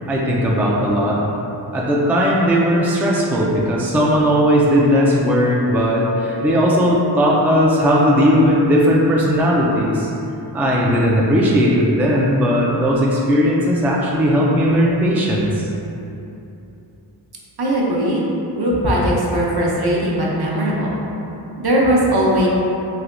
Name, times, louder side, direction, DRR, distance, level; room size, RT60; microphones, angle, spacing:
voice 1, 0.1-1.2 1.7-10.1 10.5-15.7, equal, 5° right, -4 dB, 0.3 m, -17 dB
voice 2, 17.6-18.2 18.5-21.0 21.6-22.5, equal, 55° right, -4 dB, 0.7 m, -19 dB
3.3 x 2.7 x 2.5 m, 2.9 s
cardioid pair, 40°, 47 cm